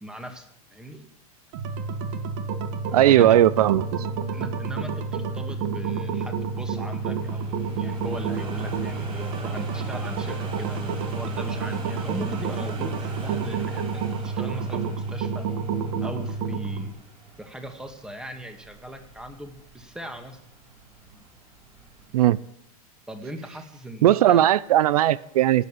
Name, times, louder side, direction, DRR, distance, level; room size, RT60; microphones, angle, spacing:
voice 1, 0.0-1.1 3.0-3.4 4.3-15.5 16.0-16.9 17.4-20.4 23.1-24.5, right 1 dB, 5° right, 6 dB, 2.0 m, -39 dB
sound 1, 1.5-16.9, right 5 dB, 50° right, 1.8 m, -29 dB
voice 2, 2.9-4.1 22.1-22.4 24.0-25.7, right 12 dB, 80° right, 20 dB, 0.6 m, -18 dB
sound 2, 4.0-22.3, right 4 dB, 25° right, 5.3 m, -42 dB
18.5 x 8.2 x 9.1 m, 0.79 s
supercardioid pair, 140°, 19 cm